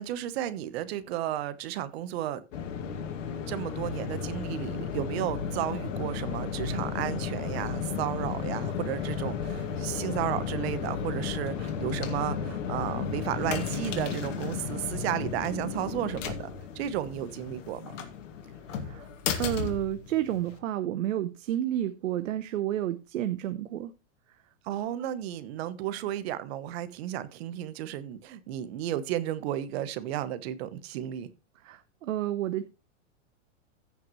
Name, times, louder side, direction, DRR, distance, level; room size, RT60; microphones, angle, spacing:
voice 1, 0.0-2.4 3.5-16.5 16.7-17.9 24.6-31.3, right 12 dB, 55° right, 1.1 m, -33 dB
sound 1, 2.5-20.6, left 6 dB, 75° left, 2.2 m, -34 dB
voice 2, 19.4-23.9 31.6-32.7, right 12 dB, 90° right, 0.9 m, -30 dB
15.5 x 5.9 x 3.1 m
supercardioid pair, 150°, 38 cm